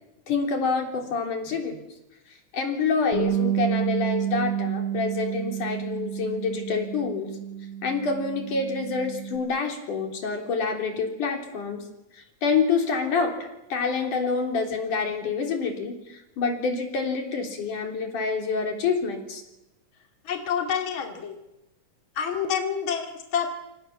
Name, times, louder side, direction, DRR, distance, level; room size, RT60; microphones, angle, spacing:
voice 1, 0.3-1.8 2.5-7.3 7.8-11.8 12.4-13.3 13.7-19.4, left 5 dB, 80° left, 3 dB, 5.1 m, -27 dB
Bass guitar, 3.1-9.4, right 10 dB, 50° right, 4.4 m, -30 dB
voice 2, 20.2-21.4 22.2-23.5, left 7 dB, 40° left, 4 dB, 3.3 m, -28 dB
28.0 x 26.5 x 7.2 m, 0.93 s
omnidirectional pair, 3.5 m